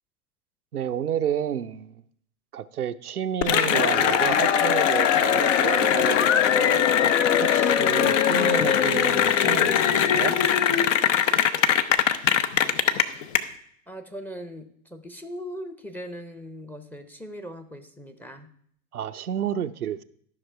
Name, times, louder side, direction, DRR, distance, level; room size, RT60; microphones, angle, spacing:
voice 1, 0.7-2.0 2.5-6.9 7.4-10.4 18.9-20.0, right 9 dB, 90° right, 0.6 m, -30 dB
Cheering / Applause, 3.4-13.4, left 9 dB, 55° left, 0.8 m, -21 dB
voice 2, 13.9-18.5, equal, 5° left, 0.7 m, -39 dB
13.0 x 6.0 x 4.5 m
figure-of-eight pair, 95°, 43 cm